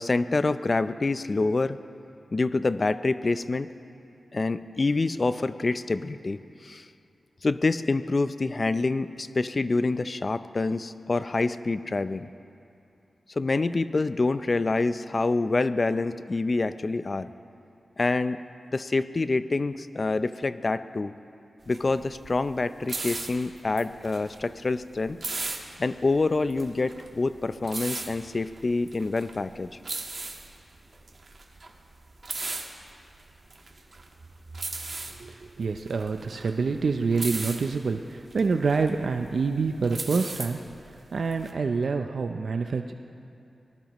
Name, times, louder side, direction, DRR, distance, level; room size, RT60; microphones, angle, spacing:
voice 1, 0.0-1.8 2.3-3.7 4.3-6.9 7.4-12.3 13.3-17.3 18.0-18.4 18.7-21.1 21.7-25.2 25.8-29.8, left 3 dB, 45° left, 13 dB, 0.5 m, -26 dB
sound 1, 21.6-41.5, right 3 dB, 50° right, 1.6 m, -38 dB
voice 2, 35.2-40.6 41.1-42.9, right 4 dB, 70° right, 5 dB, 0.6 m, -27 dB
24.5 x 19.0 x 3.1 m, 2.7 s
cardioid pair, 65°, 0 cm